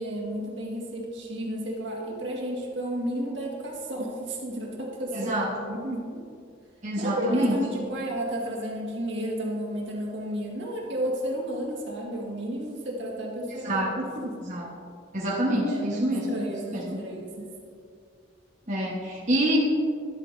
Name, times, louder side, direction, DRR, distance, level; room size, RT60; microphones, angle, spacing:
voice 1, 0.0-5.4 5.7-6.2 7.0-14.5 15.5-17.5, right 1 dB, 70° right, -3 dB, 1.8 m, -32 dB
voice 2, 5.1-5.5 6.8-7.6 13.6-13.9 14.5-14.7 15.1-16.2 16.7-17.0 18.7-19.6, right 1 dB, 40° right, -6 dB, 1.2 m, -26 dB
12.0 x 8.1 x 2.6 m, 2.3 s
head